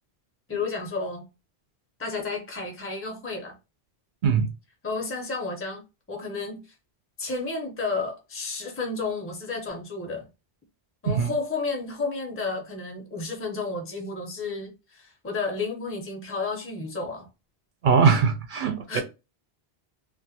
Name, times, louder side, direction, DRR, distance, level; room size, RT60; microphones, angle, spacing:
voice 1, 0.5-1.3 2.0-3.5 4.8-5.8 6.1-6.7 7.2-10.3 11.0-17.3 18.9-19.0, left 3 dB, 15° left, 0.6 m, -32 dB
voice 2, 17.8-19.0, right 6 dB, 60° right, 0.6 m, -21 dB
2.4 x 2.4 x 2.7 m
omnidirectional pair, 1.1 m